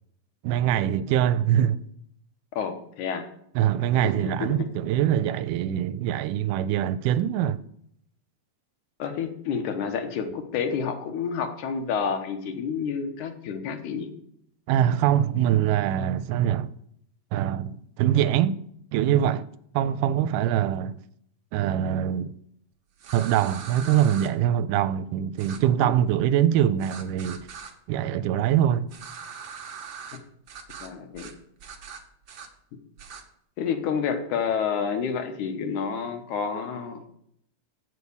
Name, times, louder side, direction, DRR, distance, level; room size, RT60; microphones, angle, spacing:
voice 1, 0.4-1.8 3.6-7.6 14.7-16.7 17.3-18.6 18.9-19.5 19.7-21.0 21.5-22.3 23.1-27.5 27.9-28.9, right 10 dB, 85° right, 2.1 m, -23 dB
voice 2, 2.5-3.3 4.0-4.6 9.0-14.1 25.8-26.0 30.8-31.3 33.6-37.1, left 6 dB, 75° left, 2.4 m, -29 dB
sound 1, 23.0-24.3 25.4-25.6 26.8-27.7 28.9-30.2 30.5-30.9 31.2-31.3 31.6-32.5 33.0-33.2, right 6 dB, 60° right, 1.3 m, -41 dB
8.3 x 6.4 x 7.0 m
omnidirectional pair, 3.7 m